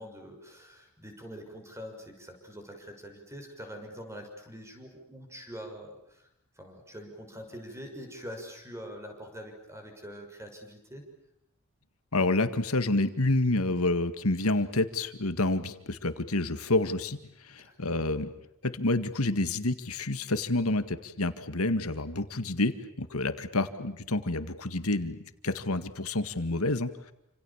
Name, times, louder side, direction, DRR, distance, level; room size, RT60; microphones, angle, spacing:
voice 1, 0.0-6.3 6.6-11.1 17.6-18.1, equal, 15° right, 4 dB, 6.3 m, -44 dB
voice 2, 12.1-17.2 17.4-18.3 18.6-25.2 25.4-26.9, left 2 dB, 80° left, 10 dB, 1.9 m, -28 dB
29.0 x 27.0 x 7.3 m, 0.81 s
head